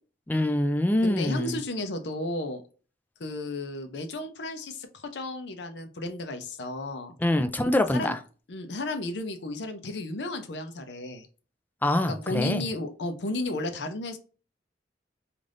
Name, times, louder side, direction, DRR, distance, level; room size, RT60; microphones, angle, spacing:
voice 1, 0.3-1.6 7.2-8.2 11.8-12.6, left 1 dB, 10° left, 0.3 m, -24 dB
voice 2, 1.0-2.6 3.2-7.1 7.9-8.2 8.5-11.3 12.1-14.2, left 2 dB, 75° left, 0.6 m, -33 dB
3.3 x 2.5 x 2.5 m
head